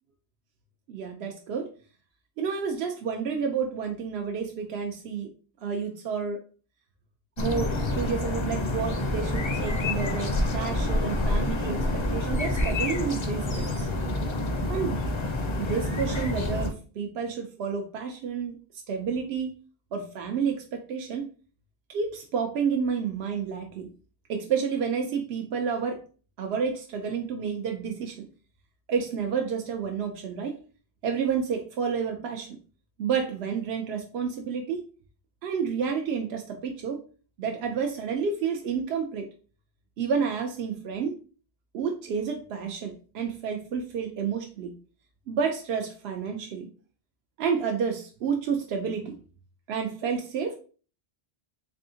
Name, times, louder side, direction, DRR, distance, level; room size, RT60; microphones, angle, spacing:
voice 1, 0.9-1.7 2.4-5.3 5.6-6.4 7.4-13.9 14.7-15.0 15.6-18.6 18.9-19.6 19.9-21.3 21.9-23.9 24.3-26.0 26.4-28.2 28.9-30.6 31.0-32.5 33.0-34.8 35.4-37.0 37.4-39.3 40.0-41.2 41.7-44.7 45.3-46.7 47.4-49.2 49.7-50.6, right 6 dB, 85° right, 3 dB, 0.8 m, -30 dB
sound 1, 7.4-16.7, left 1 dB, 35° left, 0.5 m, -28 dB
3.5 x 3.4 x 2.7 m, 0.38 s
omnidirectional pair, 1.0 m